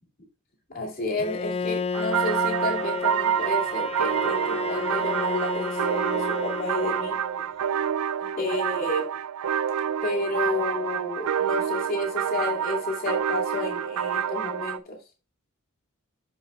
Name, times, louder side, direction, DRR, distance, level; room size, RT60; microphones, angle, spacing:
voice 1, 0.7-7.2 8.2-9.1 10.0-15.0, left 2 dB, 45° left, -1 dB, 2.5 m, -31 dB
Bowed string instrument, 1.2-7.5, left 4 dB, 30° left, 0.3 m, -32 dB
sound 1, 1.9-14.8, right 9 dB, 85° right, 0.4 m, -27 dB
12.0 x 5.3 x 2.3 m, 0.32 s
head